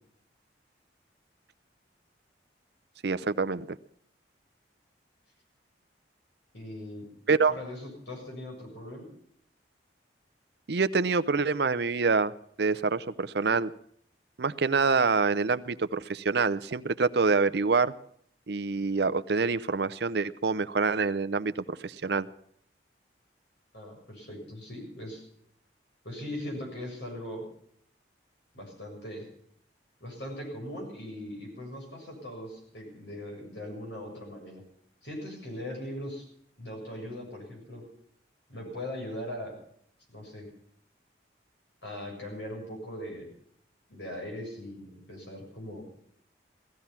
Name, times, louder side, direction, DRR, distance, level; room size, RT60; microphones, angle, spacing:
voice 1, 3.0-3.8 7.3-7.5 10.7-12.3 12.6-13.7 14.4-17.9 18.5-22.3, right 4 dB, 60° right, 14 dB, 0.6 m, -26 dB
voice 2, 6.5-7.1 7.5-9.1 23.7-25.2 26.0-27.4 28.5-29.3 30.0-34.6 35.0-36.2 36.6-37.8 38.5-39.6 40.1-40.5 41.8-43.3 43.9-45.8, left 1 dB, 70° left, 0 dB, 7.2 m, -40 dB
17.0 x 14.0 x 5.8 m, 0.64 s
head